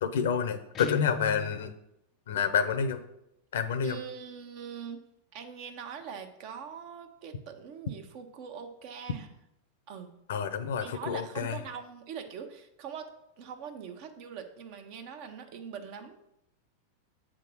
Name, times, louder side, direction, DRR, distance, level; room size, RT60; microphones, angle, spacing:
voice 1, 0.0-1.7 2.3-3.0 3.5-4.0 10.3-11.6, left 7 dB, 80° left, 12 dB, 0.7 m, -29 dB
Guitar, 0.7-1.5, left 5 dB, 35° left, 0.4 m, -37 dB
voice 2, 3.8-5.0 5.3-9.3 9.9-10.1 10.8-13.1 13.4-16.2, right 7 dB, 55° right, 6 dB, 1.0 m, -42 dB
7.6 x 3.7 x 6.2 m, 0.83 s
hypercardioid pair, 110°, 0 cm